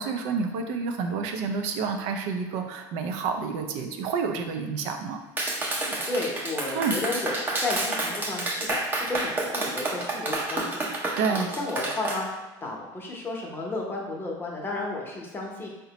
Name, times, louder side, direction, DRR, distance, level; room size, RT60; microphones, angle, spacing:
voice 1, 0.0-5.2 6.7-7.0 11.2-11.5, right 5 dB, 70° right, 5 dB, 0.4 m, -29 dB
Clapping, 5.4-12.2, right 2 dB, 20° right, 0.5 m, -29 dB
voice 2, 5.8-10.9 11.3-12.3 12.6-15.7, left 2 dB, 20° left, -2 dB, 0.7 m, -33 dB
3.9 x 2.1 x 2.8 m, 1.1 s
supercardioid pair, 110°, 11 cm